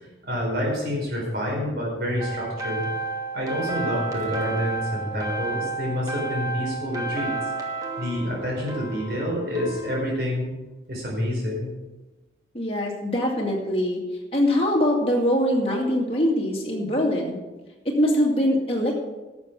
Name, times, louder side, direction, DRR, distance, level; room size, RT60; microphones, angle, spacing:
voice 1, 0.2-2.9 3.3-7.4 8.0-10.5 10.9-11.7, equal, 60° right, -2 dB, 4.5 m, -28 dB
sound 1, 2.2-10.0, right 3 dB, 20° right, 1.6 m, -31 dB
voice 2, 12.5-14.0 14.3-17.4 17.8-19.0, equal, 30° left, -2 dB, 2.3 m, -23 dB
12.0 x 7.1 x 6.2 m, 1.2 s
head